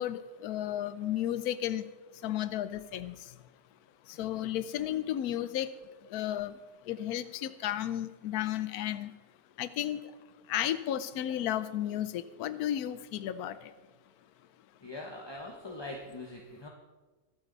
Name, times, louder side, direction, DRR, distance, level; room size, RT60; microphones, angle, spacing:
voice 1, 0.0-1.9 2.2-3.1 4.1-5.7 6.1-6.5 6.9-9.1 9.6-10.0 10.5-13.7, left 11 dB, 80° left, 14 dB, 1.2 m, -33 dB
voice 2, 14.8-16.7, left 2 dB, 20° left, 0 dB, 1.0 m, -42 dB
23.0 x 8.1 x 4.0 m, 1.3 s
omnidirectional pair, 1.6 m